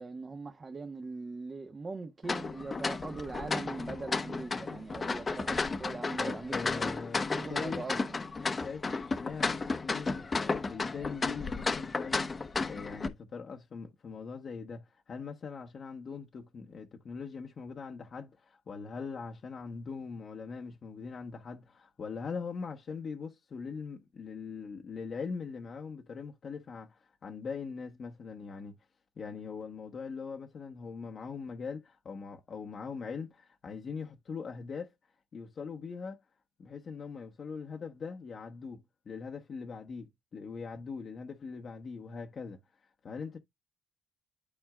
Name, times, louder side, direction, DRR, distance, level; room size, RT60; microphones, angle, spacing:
voice 1, 0.0-6.9 7.3-8.2, right 3 dB, 30° right, 1.3 m, -41 dB
sound 1, 2.2-13.1, left 4 dB, 30° left, 1.0 m, -33 dB
voice 2, 6.2-7.8 8.4-28.7 29.2-34.9 35.3-36.2 36.6-42.6 43.0-43.4, left 5 dB, 50° left, 1.2 m, -41 dB
12.0 x 4.4 x 2.4 m
cardioid pair, 90°, 0 cm